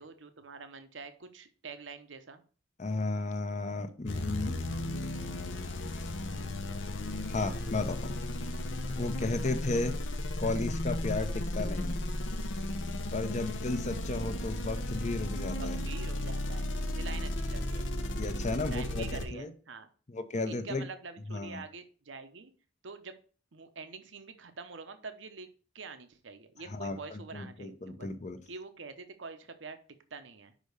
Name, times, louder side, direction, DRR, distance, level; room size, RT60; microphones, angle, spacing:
voice 1, 0.0-2.4 15.6-16.6 16.9-17.9 18.7-19.9 20.4-22.5 22.8-23.2 23.5-25.5 25.7-28.1 28.5-29.8 30.1-30.5, right 4 dB, 75° right, 0.8 m, -45 dB
voice 2, 2.8-4.6 7.3-8.2 9.0-10.0 10.4-12.0 13.1-15.8 18.1-19.5 20.1-20.8 21.3-21.6 26.7-28.4, left 2 dB, 40° left, 0.8 m, -34 dB
sound 1, 4.1-19.2, left 1 dB, 75° left, 0.9 m, -34 dB
5.5 x 5.1 x 6.5 m
head